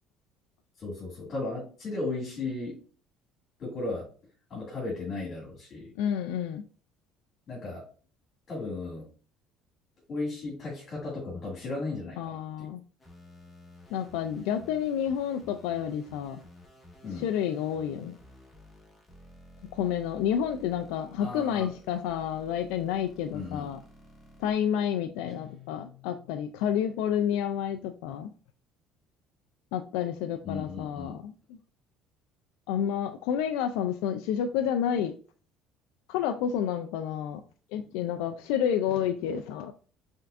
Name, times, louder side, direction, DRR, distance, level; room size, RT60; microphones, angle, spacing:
voice 1, 0.8-2.8 3.6-4.1 4.5-5.9 7.5-7.8 8.5-9.1 10.1-12.7 17.0-17.3 21.2-21.7 23.3-23.7 30.4-31.2, left 3 dB, 40° left, -3 dB, 2.0 m, -35 dB
voice 2, 6.0-6.6 12.2-12.8 13.9-16.4 17.1-18.2 19.7-23.8 24.4-28.3 29.7-31.3 32.7-35.1 36.1-37.4 37.7-39.7, left 9 dB, 85° left, 7 dB, 0.3 m, -30 dB
sound 1, 13.0-24.5, equal, 15° left, 1.5 m, -53 dB
Guitar, 25.3-27.0, left 11 dB, 25° right, 1.3 m, -54 dB
5.7 x 3.6 x 2.5 m, 0.40 s
cardioid pair, 115°, 0 cm